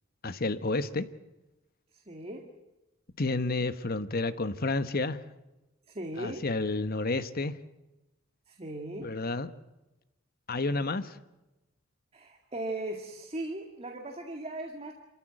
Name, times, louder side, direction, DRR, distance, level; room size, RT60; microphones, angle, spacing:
voice 1, 0.2-1.0 3.2-5.2 6.2-7.5 9.0-9.5 10.5-11.1, left 3 dB, 50° left, 12 dB, 1.2 m, -30 dB
voice 2, 1.9-2.5 5.9-6.5 8.5-9.1 12.1-14.9, right 1 dB, 30° right, 3 dB, 2.2 m, -38 dB
27.5 x 14.5 x 9.0 m, 0.99 s
head